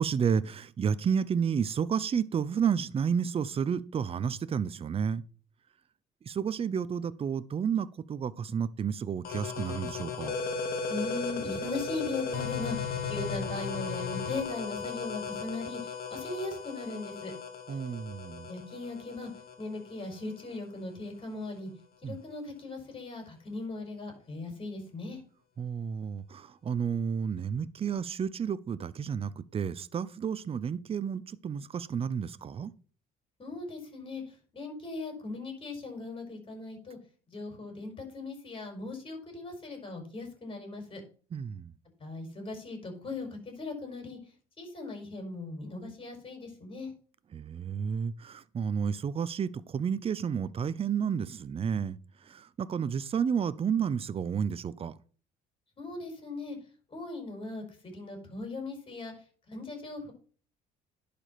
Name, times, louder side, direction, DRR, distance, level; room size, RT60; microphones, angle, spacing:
voice 1, 0.0-5.2 6.3-10.4 17.7-18.5 22.0-22.2 25.6-32.7 41.3-41.7 47.3-52.0 52.3-55.0, right 7 dB, 35° right, 0.7 m, -31 dB
sound 1, 9.2-20.6, left 5 dB, 60° left, 1.9 m, -36 dB
voice 2, 10.9-17.3 18.5-19.3 19.6-21.7 22.0-25.2 33.4-34.2 34.5-37.0 37.3-41.0 42.0-44.2 44.6-46.9 55.8-56.6 56.9-59.1 59.5-60.1, left 3 dB, 30° left, 5.1 m, -39 dB
11.0 x 5.2 x 5.8 m
cardioid pair, 110°, 17 cm